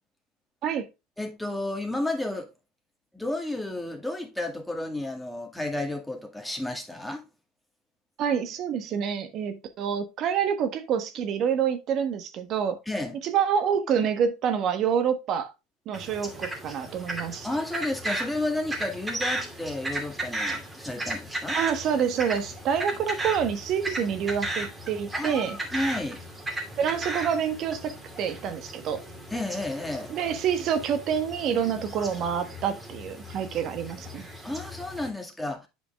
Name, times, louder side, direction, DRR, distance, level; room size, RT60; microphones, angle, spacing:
voice 1, 1.2-2.5 3.1-7.2 12.9-13.2 17.4-21.6 25.1-26.2 29.3-30.1 34.4-35.7, left 2 dB, 5° left, 2.0 m, -32 dB
voice 2, 8.2-12.8 13.2-15.5 15.9-17.5 21.5-25.6 26.8-27.9 28.2-29.0 30.1-34.3, right 8 dB, 50° right, 1.3 m, -27 dB
sound 1, 15.9-35.1, right 1 dB, 15° right, 2.6 m, -36 dB
8.3 x 5.0 x 3.5 m
supercardioid pair, 105°, 0 cm